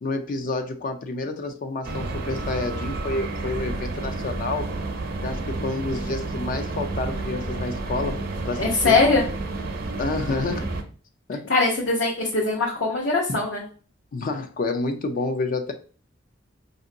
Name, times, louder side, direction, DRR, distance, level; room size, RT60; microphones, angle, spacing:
voice 1, 0.0-4.7 5.2-9.0 10.0-10.7 11.3-11.5 14.1-15.7, left 3 dB, 45° left, 6 dB, 0.4 m, -29 dB
sound 1, 1.8-10.8, right 2 dB, 55° right, 0.6 m, -30 dB
voice 2, 8.5-9.2 11.5-13.6, left 3 dB, 75° left, -2 dB, 0.8 m, -21 dB
5.1 x 2.7 x 2.6 m, 0.40 s
head